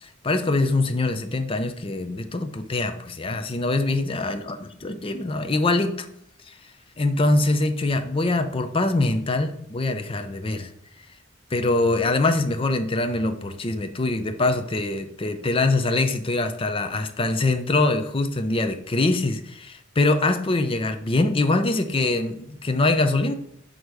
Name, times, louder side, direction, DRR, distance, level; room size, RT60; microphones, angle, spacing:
voice 1, 0.0-6.1 6.5-6.6 7.0-10.7 11.5-23.3, left 2 dB, 25° left, 8 dB, 0.5 m, -23 dB
6.3 x 3.9 x 4.8 m, 0.70 s
head